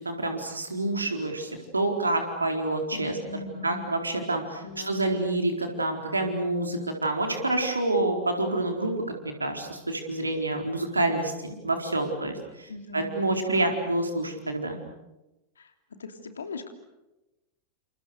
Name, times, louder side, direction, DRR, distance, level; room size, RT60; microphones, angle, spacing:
voice 1, 0.0-3.2 3.6-8.9 9.2-14.8, right 2 dB, 80° right, 4 dB, 4.4 m, -28 dB
voice 2, 2.9-3.8 4.6-5.4 12.7-13.7 15.6-15.7 16.0-16.7, left 3 dB, 70° left, 7 dB, 3.1 m, -40 dB
29.5 x 27.5 x 6.7 m, 1.0 s
figure-of-eight pair, 90°, 0 cm